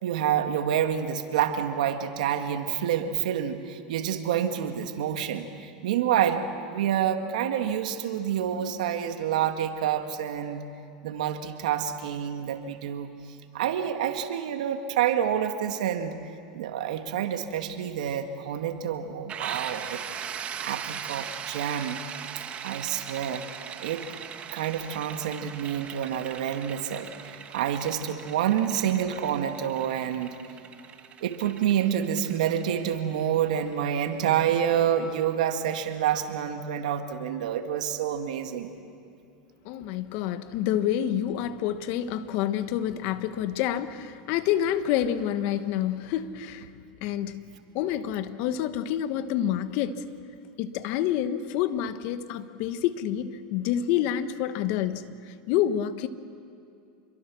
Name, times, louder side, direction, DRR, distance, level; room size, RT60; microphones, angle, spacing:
voice 1, 0.0-6.4 6.7-10.7 11.0-13.1 13.5-16.2 16.5-20.0 20.6-22.0 22.6-23.5 23.8-24.1 24.5-30.4 31.2-38.7, right 9 dB, 80° right, 7 dB, 1.9 m, -28 dB
sound 1, 19.3-34.9, right 8 dB, 30° right, 1.4 m, -40 dB
voice 2, 39.6-46.7 47.0-47.4 47.7-50.1 50.6-56.1, left 10 dB, 60° left, 12 dB, 1.2 m, -28 dB
27.5 x 23.0 x 6.3 m, 2.6 s
supercardioid pair, 120°, 4 cm